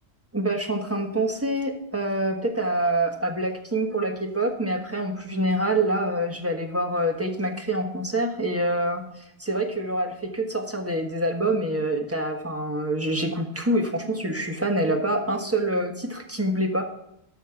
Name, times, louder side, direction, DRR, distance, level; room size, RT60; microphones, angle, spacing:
voice 1, 0.3-9.0 9.4-16.8, right 1 dB, 15° right, 3 dB, 1.3 m, -26 dB
12.5 x 5.8 x 5.8 m, 0.81 s
omnidirectional pair, 1.1 m